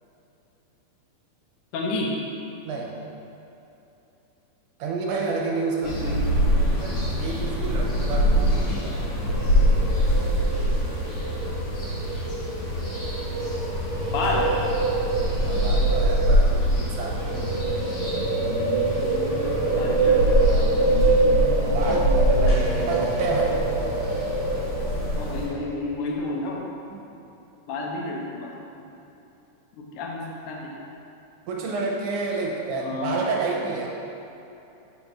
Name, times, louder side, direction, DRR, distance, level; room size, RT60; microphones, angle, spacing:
voice 1, 1.7-2.1 5.8-6.2 14.1-14.4 19.8-20.9 25.2-26.7 27.7-28.9 29.8-30.8 32.7-33.2, left 3 dB, 80° left, -2 dB, 2.2 m, -31 dB
voice 2, 4.8-6.1 6.8-9.0 15.4-17.5 21.7-23.6 26.9-27.0 31.5-33.9, right 4 dB, 75° right, -1 dB, 2.2 m, -29 dB
sound 1, 5.8-25.5, equal, 50° left, 2.0 m, -24 dB
sound 2, 8.7-25.7, right 3 dB, 60° right, 1.1 m, -26 dB
5.2 x 4.2 x 6.0 m, 2.9 s
omnidirectional pair, 3.7 m